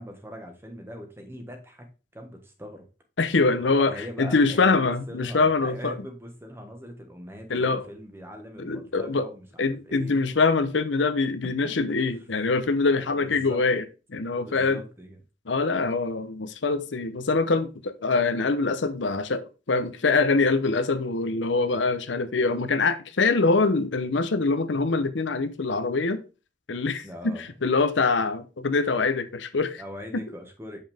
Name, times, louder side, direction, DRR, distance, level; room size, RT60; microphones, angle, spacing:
voice 1, 0.0-2.9 3.9-10.4 12.9-13.7 14.4-15.2 27.0-27.6 29.8-30.8, equal, 15° right, 1.4 m, -41 dB
voice 2, 3.2-6.0 7.5-7.8 8.6-9.3 9.6-13.8 14.1-14.8 15.5-26.2 26.7-29.8 30.1-30.2, left 3 dB, 85° left, 0.8 m, -24 dB
7.5 x 5.6 x 3.5 m
head